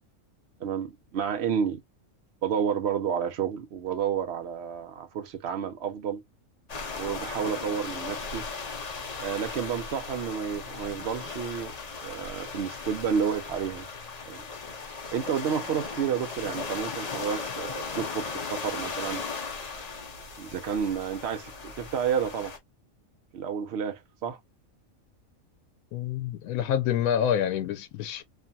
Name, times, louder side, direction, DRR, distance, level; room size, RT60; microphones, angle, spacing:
voice 1, 0.6-1.8 2.4-6.2 6.9-8.5 9.2-11.7 12.0-13.9 14.3-14.4 15.1-19.2 20.4-22.5 23.3-24.4, right 7 dB, 60° right, 0.8 m, -30 dB
sound 1, 6.7-22.6, left 4 dB, 45° left, 0.5 m, -37 dB
voice 2, 25.9-28.2, left 9 dB, 85° left, 1.0 m, -27 dB
2.7 x 2.6 x 2.2 m
omnidirectional pair, 1.4 m